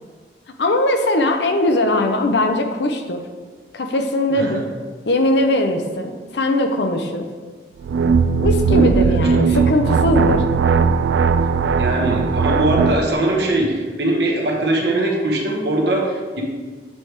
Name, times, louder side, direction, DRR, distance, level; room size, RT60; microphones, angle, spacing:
voice 1, 0.6-3.2 3.7-4.6 5.1-7.3 8.4-10.4, left 1 dB, 70° left, 5 dB, 0.7 m, -20 dB
sound 1, 7.8-13.1, right 5 dB, 90° right, 0.3 m, -17 dB
voice 2, 11.8-16.4, right 1 dB, 65° right, -1 dB, 1.2 m, -21 dB
8.3 x 3.4 x 4.7 m, 1.4 s
head